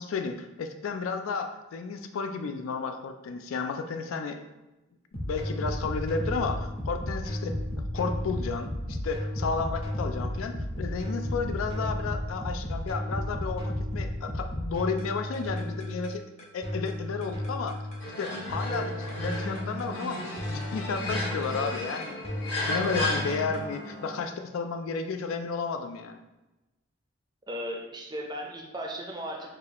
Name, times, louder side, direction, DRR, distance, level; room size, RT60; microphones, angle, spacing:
voice 1, 0.0-4.4 5.3-7.5 7.9-16.2 16.5-17.8 18.2-22.2 22.6-26.2, left 4 dB, 80° left, 7 dB, 0.3 m, -32 dB
sound 1, 5.1-23.7, left 1 dB, 30° left, 0.8 m, -34 dB
sound 2, 18.0-24.2, left 2 dB, 60° left, 1.1 m, -34 dB
voice 2, 27.5-29.5, equal, 20° right, 1 dB, 0.5 m, -36 dB
4.8 x 2.4 x 2.9 m, 1.0 s
head